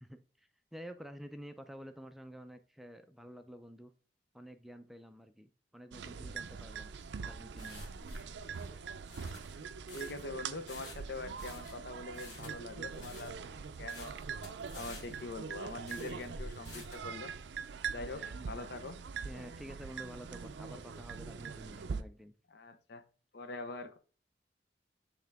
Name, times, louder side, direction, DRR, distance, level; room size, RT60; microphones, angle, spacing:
voice 1, 0.0-3.9 4.3-6.9 7.2-7.9 18.0-18.4 19.2-22.3, equal, ahead, 0.4 m, -50 dB
sound 1, 5.9-22.0, right 5 dB, 75° right, 0.4 m, -43 dB
sound 2, 7.0-17.1, left 1 dB, 80° left, 2.2 m, -51 dB
voice 2, 9.9-13.5 13.8-14.4 14.7-17.3 17.9-19.0 22.5-23.0 23.3-24.0, left 2 dB, 65° left, 0.7 m, -44 dB
7.9 x 3.6 x 3.4 m
head